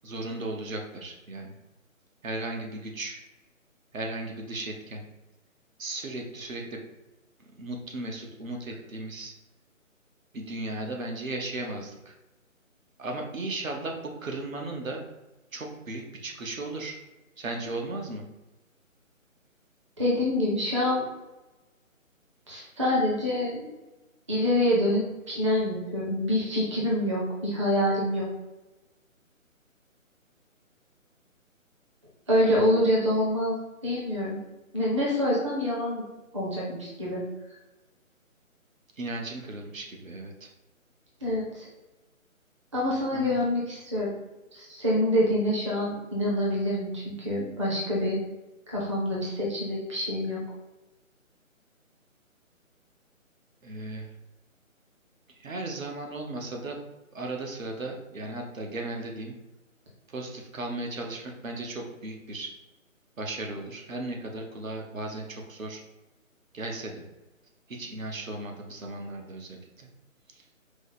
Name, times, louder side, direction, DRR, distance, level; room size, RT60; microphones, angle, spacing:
voice 1, 0.0-1.5 2.2-3.2 3.9-5.0 5.8-6.8 7.5-9.3 10.3-12.1 13.0-15.0 15.5-17.0 17.4-18.2 39.0-40.5 43.1-43.4 53.6-54.1 55.4-56.8 57.1-59.3 60.1-62.5 63.2-65.8 66.5-67.0 67.7-69.9, right 2 dB, 70° right, 2 dB, 1.0 m, -36 dB
voice 2, 20.0-21.0 22.5-23.7 24.3-28.3 32.3-33.5 33.8-34.4 34.7-36.0 36.3-37.2 41.2-41.7 42.7-44.1 44.5-48.2 48.7-50.4, left 1 dB, 20° right, -4 dB, 0.6 m, -26 dB
4.9 x 2.1 x 4.0 m, 1.0 s
figure-of-eight pair, 155°, 41 cm